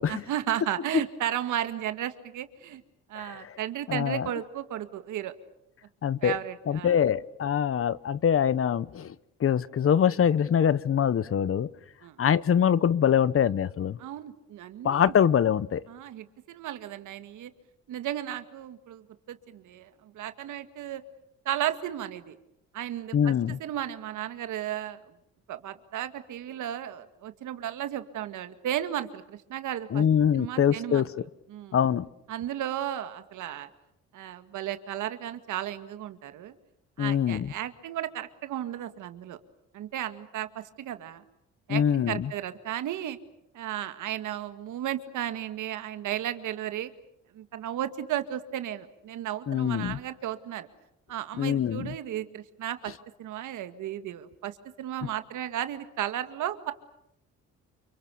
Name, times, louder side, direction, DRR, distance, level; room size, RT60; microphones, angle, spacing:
voice 1, 0.1-2.8 3.1-5.3 6.2-7.0 12.0-12.2 14.0-15.1 15.9-17.5 17.9-21.0 21.5-22.4 22.7-25.1 25.5-30.0 30.3-31.1 31.5-31.8 32.3-33.7 34.1-36.5 37.0-39.4 39.7-41.2 41.7-43.2 43.5-46.9 47.3-50.7 51.1-52.9 53.2-56.7, right 11 dB, 80° right, 2.0 m, -34 dB
voice 2, 3.1-3.6 3.9-4.3 6.0-6.4 6.7-9.1 9.4-11.7 12.2-14.0 14.8-15.8 23.1-23.6 29.9-31.1 31.7-32.1 37.0-37.5 41.7-42.3 49.5-50.0 51.4-51.9 55.0-55.1, left 8 dB, 45° left, 1.0 m, -24 dB
29.0 x 25.5 x 7.0 m
cardioid pair, 90°, 30 cm